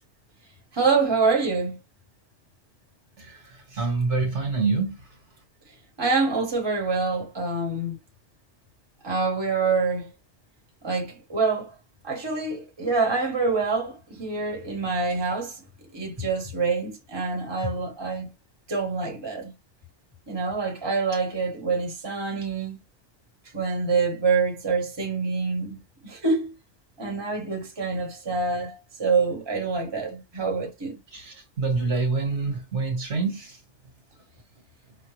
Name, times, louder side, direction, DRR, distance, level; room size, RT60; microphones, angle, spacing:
voice 1, 0.7-1.8 6.0-8.0 9.0-10.1 10.8-11.7 12.0-15.6 15.9-18.3 18.7-19.5 20.3-22.8 23.5-26.5 27.0-30.9, right 4 dB, 20° right, 1.1 m, -26 dB
voice 2, 3.2-4.9 31.1-33.6, right 4 dB, 65° right, 1.5 m, -26 dB
5.1 x 2.2 x 3.1 m
omnidirectional pair, 1.3 m